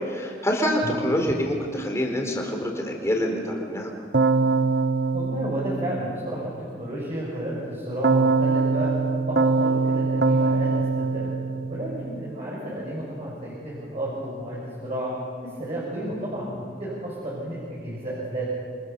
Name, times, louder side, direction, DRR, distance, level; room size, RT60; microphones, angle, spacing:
voice 1, 0.1-3.9, equal, 15° left, 2 dB, 4.2 m, -26 dB
Keyboard (musical), 4.1-6.5 8.0-12.3, right 3 dB, 70° right, 1.1 m, -23 dB
voice 2, 5.1-6.5 6.8-8.9 9.2-11.3 11.7-15.1 15.4-18.5, right 1 dB, 35° right, -5 dB, 6.8 m, -32 dB
28.0 x 26.0 x 7.1 m, 2.2 s
head